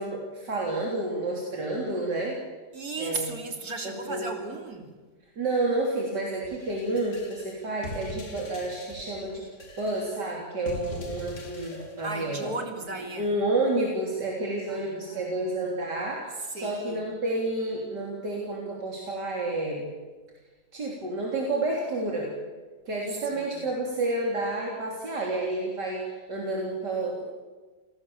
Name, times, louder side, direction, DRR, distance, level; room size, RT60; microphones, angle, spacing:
voice 1, 0.0-2.4 3.0-3.3 3.8-4.3 5.4-9.4 9.8-12.5 13.2-19.9 20.7-22.3 22.9-27.2, right 2 dB, 80° right, -2 dB, 4.1 m, -30 dB
voice 2, 2.7-4.9 12.0-13.3 14.7-15.9 16.5-17.0 23.3-23.7, right 3 dB, 60° right, 4 dB, 3.4 m, -36 dB
sound 1, 6.4-12.1, left 1 dB, 45° left, 2.5 m, -42 dB
28.0 x 18.5 x 7.2 m, 1.4 s
omnidirectional pair, 1.8 m